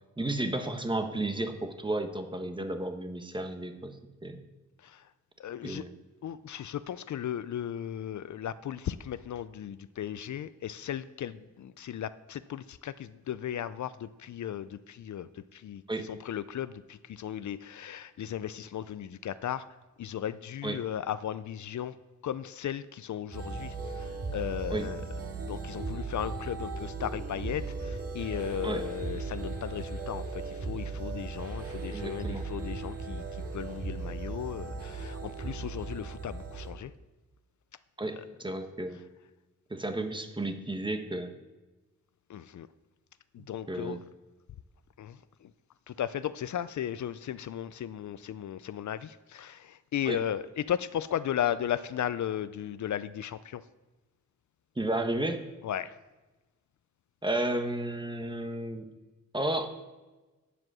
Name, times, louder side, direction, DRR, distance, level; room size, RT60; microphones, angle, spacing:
voice 1, 0.2-4.0 4.2-4.4 5.6-5.9 15.9-16.1 20.6-20.8 24.7-24.8 28.6-28.8 31.9-32.4 38.0-39.0 39.7-41.3 43.7-44.0 50.1-50.2 54.8-55.4 57.2-58.9 59.3-59.7, right 1 dB, 15° right, 7 dB, 1.0 m, -32 dB
voice 2, 4.8-5.1 5.4-5.8 6.2-19.7 20.0-22.0 22.2-25.0 25.4-36.9 38.2-38.3 42.3-42.7 43.3-44.0 45.0-45.5 45.9-53.6 55.6-56.0, left 10 dB, 70° left, 15 dB, 0.5 m, -36 dB
sound 1, 23.3-36.7, right 3 dB, 50° right, 1.9 m, -37 dB
9.8 x 7.7 x 6.1 m, 1.2 s
wide cardioid pair, 120°, 31 cm